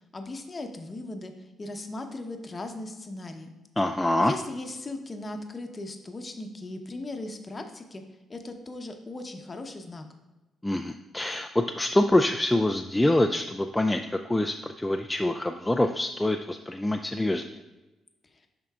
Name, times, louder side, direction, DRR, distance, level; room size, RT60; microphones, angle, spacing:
voice 1, 0.1-1.3 1.6-3.5 4.2-8.0 8.3-10.0, left 2 dB, 30° left, 5 dB, 0.8 m, -38 dB
voice 2, 3.8-4.3 10.6-17.4, left 1 dB, 10° left, 4 dB, 0.3 m, -25 dB
11.0 x 3.7 x 2.4 m, 1.1 s
cardioid pair, 90°, 0 cm